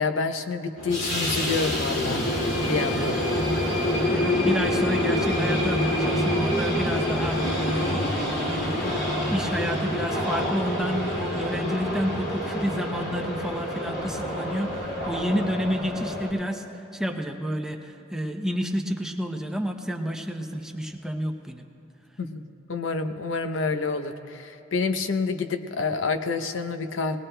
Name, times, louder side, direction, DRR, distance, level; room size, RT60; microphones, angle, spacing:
voice 1, 0.0-2.3 2.6-3.2 22.2-22.4 22.7-27.2, left 4 dB, 90° left, 8 dB, 0.7 m, -28 dB
sound 1, 0.8-16.3, left 1 dB, 65° left, 2.2 m, -26 dB
voice 2, 4.1-16.6 16.9-21.6, equal, 5° right, 3 dB, 0.7 m, -30 dB
20.0 x 19.5 x 2.2 m, 2.8 s
head